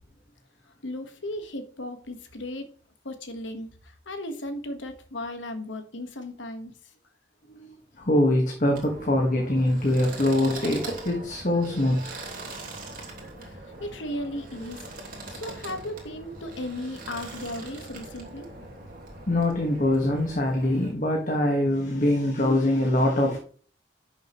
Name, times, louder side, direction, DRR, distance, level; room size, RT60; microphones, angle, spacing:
voice 1, 0.7-2.7 3.0-6.7 13.4-14.9 15.3-18.5, left 1 dB, 90° left, 7 dB, 1.4 m, -36 dB
voice 2, 7.5-12.1 19.3-23.4, left 1 dB, 45° left, 1 dB, 1.5 m, -24 dB
sound 1, 8.7-20.9, right 2 dB, 50° right, 2.8 m, -41 dB
11.0 x 6.5 x 3.0 m, 0.43 s
head